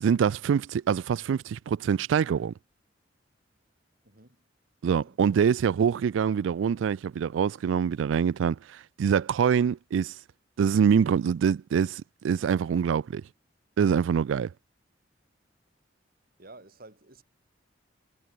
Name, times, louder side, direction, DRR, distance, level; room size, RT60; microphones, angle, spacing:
voice 1, 0.0-2.5 4.8-8.6 9.0-10.1 10.6-13.2 13.8-14.5, right 7 dB, 80° right, 0.3 m, -25 dB
voice 2, 4.0-4.4 5.0-5.2 16.4-17.2, right 2 dB, 50° right, 5.6 m, -51 dB
head